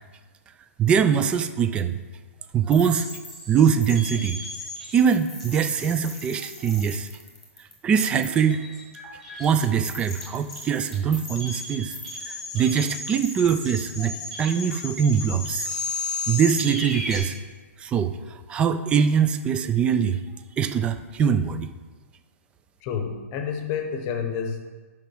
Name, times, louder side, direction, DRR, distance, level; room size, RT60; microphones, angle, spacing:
voice 1, 0.8-2.0 2.5-3.1 3.5-4.4 4.9-7.1 7.8-8.6 9.4-12.0 12.2-14.1 14.4-15.7 16.3-17.4 17.8-18.2 18.5-20.2 20.6-21.7, right 7 dB, 15° right, 10 dB, 0.3 m, -22 dB
sound 1, 2.7-17.2, left 2 dB, 5° left, 1.7 m, -35 dB
voice 2, 22.8-24.6, left 6 dB, 30° left, 5 dB, 0.9 m, -29 dB
6.5 x 5.1 x 5.9 m, 1.3 s
hypercardioid pair, 150°, 8 cm